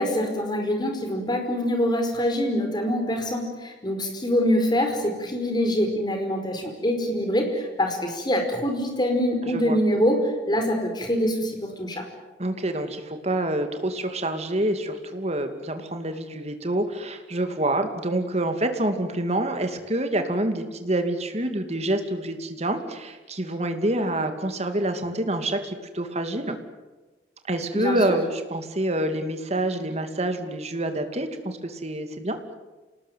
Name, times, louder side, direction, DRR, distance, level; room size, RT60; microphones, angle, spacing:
voice 1, 0.0-12.0 27.7-28.2, equal, 25° left, 4 dB, 5.0 m, -25 dB
voice 2, 9.4-9.8 12.4-26.6 27.5-32.4, right 1 dB, 35° right, 7 dB, 2.6 m, -27 dB
28.0 x 19.5 x 9.4 m, 1.2 s
head